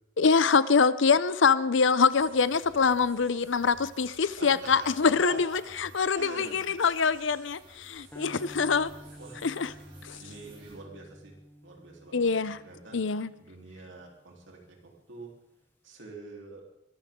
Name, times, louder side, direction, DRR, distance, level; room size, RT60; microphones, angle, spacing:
voice 1, 0.2-8.9 9.4-9.7 10.0-10.2 12.1-12.6 12.9-13.3, left 5 dB, 75° left, 16 dB, 0.6 m, -24 dB
sound 1, 2.1-10.8, right 2 dB, 30° right, 5.3 m, -54 dB
voice 2, 4.4-5.6 6.1-6.7 8.2-8.4 9.2-9.4 10.2-11.4 11.6-13.0 13.4-15.3 15.8-16.6, right 3 dB, 70° right, 0 dB, 3.7 m, -46 dB
sound 2, 8.1-14.5, equal, 10° left, 1.1 m, -51 dB
22.5 x 14.5 x 3.8 m, 0.89 s
head